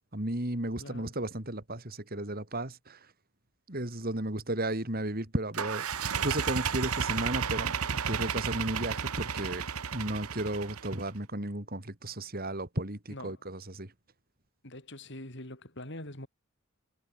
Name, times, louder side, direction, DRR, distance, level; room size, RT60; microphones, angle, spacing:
voice 1, 0.1-3.1 3.7-5.9 6.1-9.7 9.9-13.9, right 1 dB, 45° right, 3.3 m, -34 dB
voice 2, 0.8-1.1 13.1-13.4 14.6-16.3, left 1 dB, 55° left, 5.4 m, -43 dB
sound 1, 5.5-11.1, right 6 dB, 85° right, 1.2 m, -32 dB
head